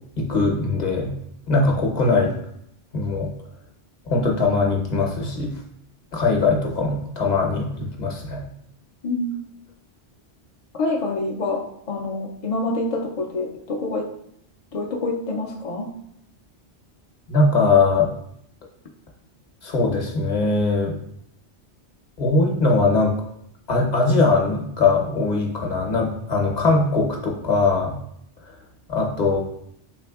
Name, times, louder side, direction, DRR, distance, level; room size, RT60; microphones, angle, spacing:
voice 1, 0.2-1.1 1.5-2.3 2.9-3.3 4.1-5.5 6.1-8.4 17.3-18.1 19.6-21.0 22.2-23.1 23.7-27.9 28.9-29.4, left 3 dB, 45° left, 0 dB, 0.8 m, -21 dB
voice 2, 9.0-9.4 10.7-14.1 14.7-15.9, left 2 dB, 60° left, 1 dB, 0.3 m, -26 dB
4.9 x 3.3 x 2.3 m, 0.73 s
omnidirectional pair, 1.1 m